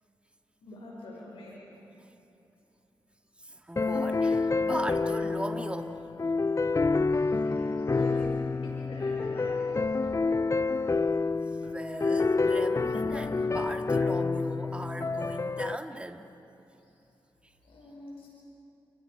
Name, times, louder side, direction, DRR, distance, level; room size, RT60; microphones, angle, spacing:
voice 1, 0.6-1.6 7.1-8.4 8.6-9.8 16.8-16.9 17.6-18.3, left 1 dB, 80° left, -4 dB, 5.3 m, -45 dB
voice 2, 3.4-6.0 11.5-16.3 17.4-17.5, right 1 dB, 10° right, 5 dB, 2.0 m, -38 dB
sound 1, 3.8-15.8, left 3 dB, 30° left, 0.6 m, -28 dB
29.5 x 29.5 x 4.9 m, 2.8 s
cardioid pair, 45°, 9 cm